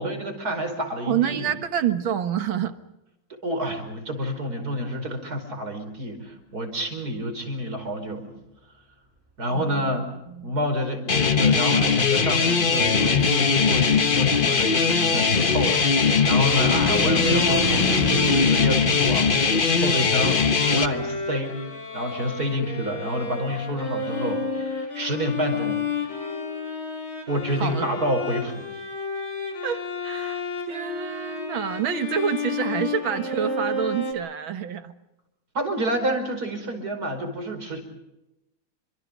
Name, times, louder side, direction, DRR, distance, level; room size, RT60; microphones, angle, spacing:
voice 1, 0.0-1.5 3.3-8.3 9.4-10.1 10.4-21.6 21.9-25.8 27.3-28.7 35.5-37.8, equal, 45° right, 6 dB, 5.5 m, -28 dB
voice 2, 1.1-2.7 9.5-10.6 27.6-27.9 29.6-34.9, right 8 dB, 70° right, 9 dB, 2.2 m, -28 dB
sound 1, 11.1-20.9, left 5 dB, 35° left, 1.0 m, -20 dB
sound 2, 15.7-21.3, equal, 5° right, 7.3 m, -32 dB
Bowed string instrument, 20.6-34.1, left 4 dB, 70° left, 4.8 m, -31 dB
29.5 x 25.5 x 5.3 m, 0.92 s
omnidirectional pair, 2.3 m